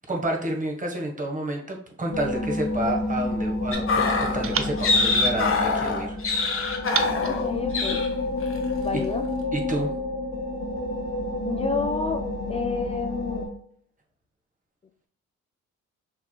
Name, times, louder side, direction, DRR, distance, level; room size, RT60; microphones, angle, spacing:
voice 1, 0.1-6.2 6.5-6.6 9.5-9.9, right 1 dB, 25° right, 1 dB, 1.4 m, -30 dB
sound 1, 2.1-13.5, left 2 dB, 70° left, 2.0 m, -29 dB
sound 2, 2.6-3.8 4.4-6.0 6.9-8.4, right 8 dB, 45° right, 0.6 m, -35 dB
sound 3, 3.7-7.5 7.7-8.1 8.4-8.6, left 3 dB, 45° left, 1.2 m, -24 dB
voice 2, 7.3-8.1 8.8-9.3 11.4-13.5, left 4 dB, 20° left, 4 dB, 0.5 m, -30 dB
5.8 x 3.5 x 2.3 m, 0.62 s
cardioid pair, 90°, 30 cm